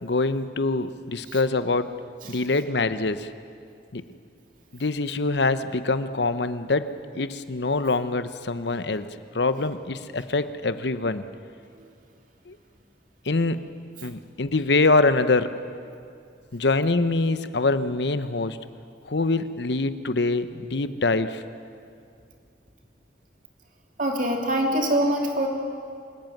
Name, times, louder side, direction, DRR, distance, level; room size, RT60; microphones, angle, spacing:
voice 1, 0.0-1.9 2.3-3.3 3.9-4.0 4.7-9.1 9.3-11.2 12.5-12.6 13.3-13.6 14.0-15.6 16.5-18.6 19.1-21.4, left 3 dB, 70° left, 12 dB, 0.9 m, -24 dB
voice 2, 24.0-25.5, right 1 dB, 45° right, 2 dB, 2.8 m, -24 dB
25.5 x 14.5 x 9.3 m, 2.4 s
head